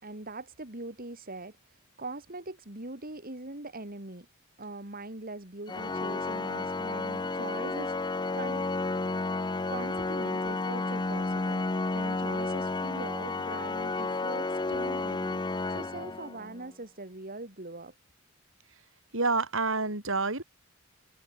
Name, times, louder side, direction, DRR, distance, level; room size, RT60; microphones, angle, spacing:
voice 1, 0.0-4.3 4.6-8.7 9.7-17.9, right 2 dB, 45° right, 3.5 m, -42 dB
Organ, 5.7-16.6, left 3 dB, 20° left, 0.6 m, -32 dB
voice 2, 19.1-20.4, right 3 dB, 65° right, 5.5 m, -28 dB
head